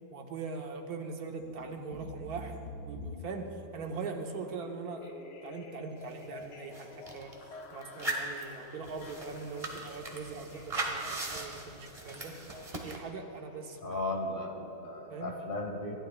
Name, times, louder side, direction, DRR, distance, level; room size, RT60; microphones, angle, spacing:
voice 1, 0.1-7.3 7.7-12.3 12.8-14.0 15.1-15.3, right 4 dB, 60° right, 3 dB, 1.5 m, -41 dB
sound 1, 1.4-14.0, left 2 dB, 75° left, 1.6 m, -49 dB
sound 2, 6.1-6.2 6.4-7.3 7.8-13.0, right 2 dB, 20° right, 1.3 m, -39 dB
voice 2, 13.8-16.0, left 2 dB, 30° left, 1 dB, 1.4 m, -36 dB
26.5 x 11.5 x 2.4 m, 2.8 s
omnidirectional pair, 1.9 m